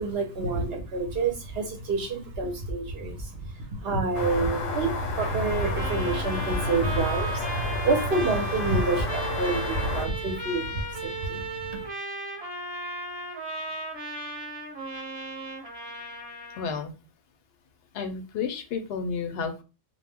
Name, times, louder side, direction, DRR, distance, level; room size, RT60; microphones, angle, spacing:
voice 1, 0.0-11.8, right 3 dB, 60° right, 2 dB, 0.7 m, -28 dB
sound 1, 4.1-10.1, left 2 dB, 90° left, 1.0 m, -31 dB
Trumpet, 5.2-16.8, right 2 dB, 25° right, 0.7 m, -36 dB
voice 2, 16.6-16.9 17.9-19.6, left 5 dB, 65° left, 6 dB, 0.7 m, -32 dB
2.2 x 2.0 x 3.4 m, 0.30 s
omnidirectional pair, 1.3 m